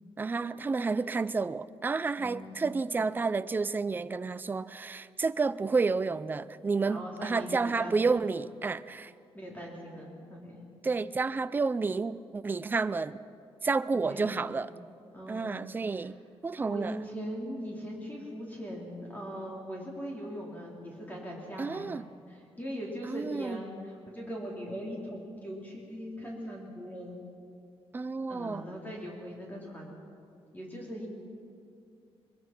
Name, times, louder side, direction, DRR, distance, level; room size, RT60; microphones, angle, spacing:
voice 1, 0.2-9.1 10.8-13.2 13.6-14.7 15.3-16.2 16.4-17.0 21.6-22.0 23.0-23.6 27.9-28.7, right 4 dB, 20° right, 0.4 m, -30 dB
voice 2, 2.2-2.7 6.9-7.9 9.3-10.6 14.0-14.4 15.1-15.6 16.0-16.1 16.6-22.0 22.3-27.2 28.3-29.9 30.5-31.1, equal, 15° left, 3.4 m, -40 dB
22.5 x 21.5 x 5.9 m
wide cardioid pair, 155°, 10 cm